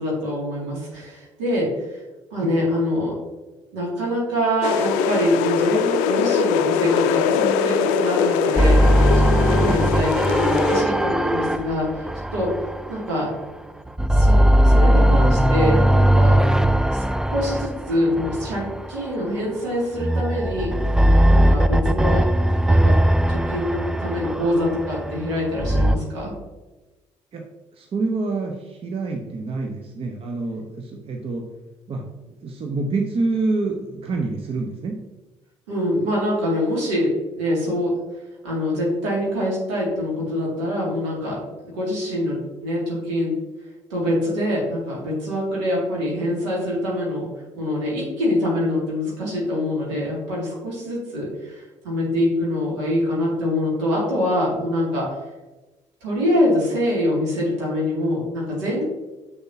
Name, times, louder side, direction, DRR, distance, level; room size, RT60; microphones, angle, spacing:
voice 1, 0.0-2.0 2.3-3.2 3.7-12.5 12.9-13.3 14.1-16.4 16.9-17.0 17.3-20.7 21.3-22.3 22.7-23.0 23.3-26.3 35.7-38.0 38.4-41.4 41.7-43.4 43.9-47.3 47.5-55.1 56.0-58.8, left 1 dB, 70° right, -4 dB, 2.3 m, -24 dB
sound 1, 4.6-10.8, left 7 dB, 60° left, 0.4 m, -22 dB
sound 2, 8.6-13.5 13.9-19.2 19.9-26.0, right 1 dB, 5° right, 0.3 m, -19 dB
voice 2, 27.7-31.4 31.9-32.1 32.4-35.0, right 3 dB, 35° right, 2 dB, 0.8 m, -27 dB
7.1 x 6.6 x 2.7 m, 1.1 s
figure-of-eight pair, 45°, 15 cm